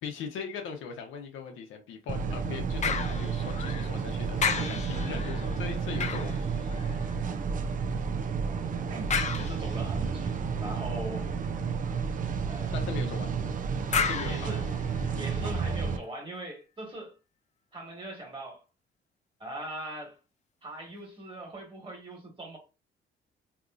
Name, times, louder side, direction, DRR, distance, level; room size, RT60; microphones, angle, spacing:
voice 1, 0.0-6.4 12.7-13.4 13.9-14.6, left 6 dB, 85° left, 0.8 m, -39 dB
sound 1, 2.1-16.0, right 5 dB, 40° right, 0.5 m, -31 dB
sound 2, 2.8-4.0 4.4-7.2 9.1-10.1 13.9-15.4 15.9-16.0, left 6 dB, 35° left, 0.5 m, -33 dB
voice 2, 4.6-5.2 8.9-11.3 12.5-12.8 14.2-14.7 15.2-17.1 17.7-18.6 19.4-20.2 20.6-22.6, right 1 dB, 25° right, 1.6 m, -41 dB
3.6 x 2.9 x 2.4 m
cardioid pair, 90°, 20 cm